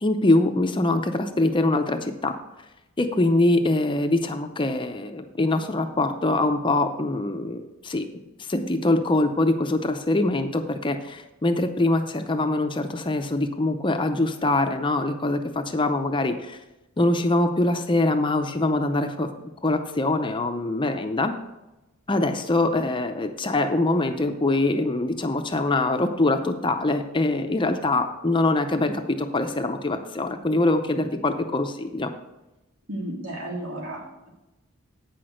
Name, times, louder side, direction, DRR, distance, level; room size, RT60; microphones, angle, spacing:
voice 1, 0.0-2.3 3.0-16.6 17.0-19.3 19.6-21.3 22.1-32.1, left 2 dB, 20° left, 6 dB, 0.5 m, -23 dB
voice 2, 32.9-34.3, right 1 dB, 70° right, -1 dB, 2.3 m, -33 dB
8.5 x 6.1 x 6.3 m, 0.99 s
head